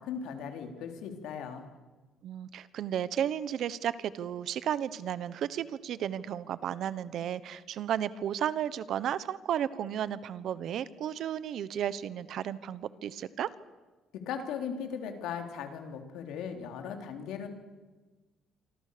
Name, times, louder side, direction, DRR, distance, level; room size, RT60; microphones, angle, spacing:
voice 1, 0.0-1.7 14.3-17.5, left 7 dB, 90° left, 5 dB, 3.9 m, -38 dB
voice 2, 2.2-13.5, right 10 dB, 50° right, 16 dB, 1.0 m, -33 dB
27.5 x 24.5 x 6.9 m, 1.3 s
cardioid pair, 180°, 0 cm